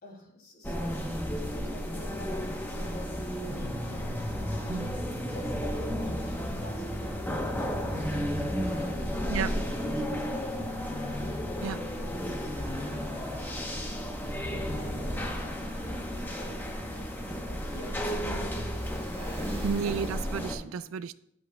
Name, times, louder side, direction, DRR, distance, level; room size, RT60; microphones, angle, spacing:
voice 1, 0.0-4.0 4.5-11.1 11.3-12.6 13.1-18.7 19.1-19.8 20.5-21.0, left 1 dB, 50° left, 2.5 m, -50 dB
sound 1, 0.6-20.5, equal, 10° left, 0.8 m, -33 dB
sound 2, 2.3-20.1, equal, 30° right, 1.2 m, -43 dB
voice 2, 19.6-21.1, right 6 dB, 85° right, 0.4 m, -32 dB
11.0 x 7.9 x 2.2 m
head